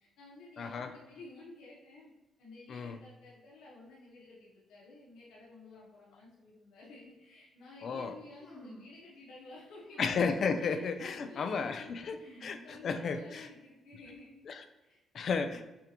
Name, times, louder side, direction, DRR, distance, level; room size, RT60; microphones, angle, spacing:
voice 1, 0.0-2.1 2.4-10.0 10.6-11.9 12.2-14.4 14.8-15.0, left 2 dB, 85° left, -6 dB, 1.0 m, -53 dB
voice 2, 0.6-0.9 2.7-3.0 7.8-8.1 10.0-13.5 14.5-14.6 15.1-15.6, left 5 dB, 55° left, 9 dB, 0.4 m, -33 dB
sound 1, 8.4-9.0 9.8-10.5 10.9-11.3 12.1-13.3, right 1 dB, 40° left, 1.3 m, -54 dB
6.8 x 2.5 x 2.9 m, 1.0 s
cardioid pair, 90°, 0 cm